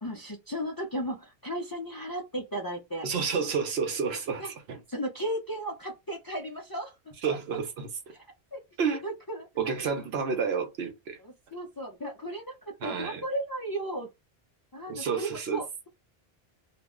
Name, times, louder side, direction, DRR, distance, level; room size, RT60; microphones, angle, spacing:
voice 1, 0.0-3.1 4.4-4.5 4.9-7.4 8.1-8.2 8.5-8.6 9.0-9.5 11.2-14.1 14.7-15.9, right 1 dB, 40° left, 0.3 m, -35 dB
voice 2, 3.0-4.8 7.2-7.9 8.8-9.0 9.6-11.2 12.8-13.2 14.9-15.6, right 6 dB, 85° right, 1.0 m, -30 dB
2.4 x 2.0 x 3.5 m
omnidirectional pair, 1.0 m